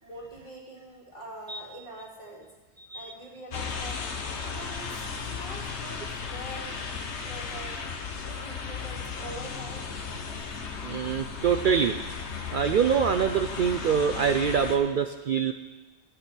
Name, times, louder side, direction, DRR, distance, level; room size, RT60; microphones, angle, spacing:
voice 1, 0.0-2.5 2.9-4.1 4.4-7.8 8.2-9.9, right 1 dB, 45° left, -4 dB, 2.7 m, -44 dB
voice 2, 2.8-3.1 10.8-11.9 12.5-15.5, right 7 dB, 60° right, 7 dB, 0.6 m, -25 dB
sound 1, 3.5-14.8, left 5 dB, 85° left, 1.3 m, -35 dB
14.0 x 8.8 x 4.3 m, 1.2 s
omnidirectional pair, 1.1 m